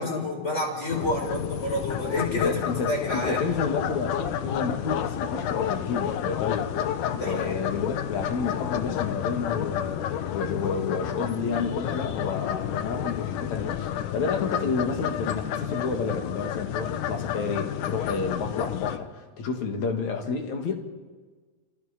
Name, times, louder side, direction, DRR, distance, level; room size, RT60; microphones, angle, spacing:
voice 1, 0.0-2.6 2.9-3.6 7.1-7.6, left 2 dB, 20° left, 0 dB, 5.7 m, -29 dB
sound 1, 0.9-19.0, left 10 dB, 85° left, 2.6 m, -30 dB
voice 2, 2.3-6.7 7.2-20.7, left 4 dB, 65° left, 3 dB, 3.5 m, -30 dB
28.5 x 28.0 x 5.3 m, 1.4 s
omnidirectional pair, 3.6 m